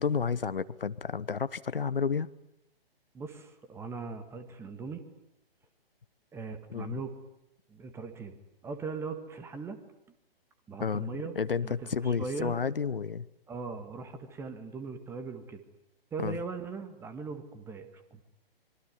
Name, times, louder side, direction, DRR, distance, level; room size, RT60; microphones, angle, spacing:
voice 1, 0.0-2.3 6.7-7.0 10.8-13.3 16.2-16.4, left 6 dB, 65° left, 16 dB, 1.0 m, -31 dB
voice 2, 3.1-5.0 6.3-7.2 7.7-8.4 8.6-9.8 10.7-11.4 11.6-12.6 13.5-15.6 16.1-18.2, right 4 dB, 10° right, 9 dB, 1.8 m, -39 dB
25.0 x 23.5 x 9.9 m, 0.81 s
figure-of-eight pair, 130°, 30 cm